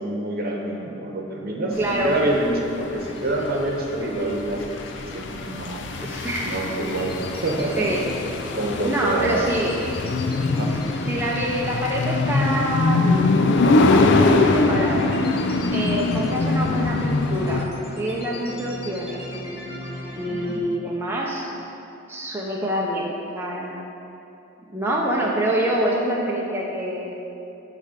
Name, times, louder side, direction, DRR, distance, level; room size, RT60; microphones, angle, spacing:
voice 1, 0.0-4.6 5.1-5.8 6.4-7.9 8.5-9.5 10.5-10.8 20.3-20.5, right 1 dB, 50° right, 0 dB, 1.0 m, -26 dB
sound 1, 1.8-17.6, left 3 dB, 65° left, 0.5 m, -23 dB
voice 2, 1.8-2.2 6.0-6.6 7.8-8.1 8.8-10.1 11.1-13.4 13.7-15.1 15.7-17.7 18.0-19.2 20.1-21.5 22.1-23.8 24.7-27.1, right 1 dB, 10° right, -4 dB, 0.6 m, -26 dB
sound 2, 3.0-20.6, left 1 dB, 30° left, 1.0 m, -38 dB
8.6 x 3.4 x 6.5 m, 2.8 s
head